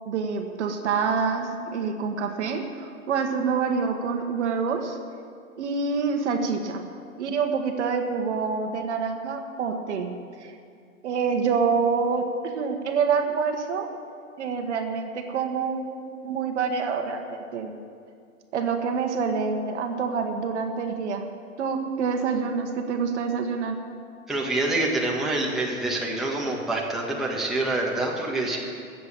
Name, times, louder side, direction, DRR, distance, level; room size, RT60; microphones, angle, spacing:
voice 1, 0.1-5.0 5.6-6.8 7.2-10.5 11.0-13.9 14.4-17.8 18.5-21.3 21.6-23.8, right 5 dB, 55° right, 5 dB, 1.4 m, -27 dB
voice 2, 24.3-28.6, right 2 dB, ahead, -4 dB, 1.6 m, -26 dB
14.5 x 7.7 x 8.7 m, 2.3 s
hypercardioid pair, 125°, 42 cm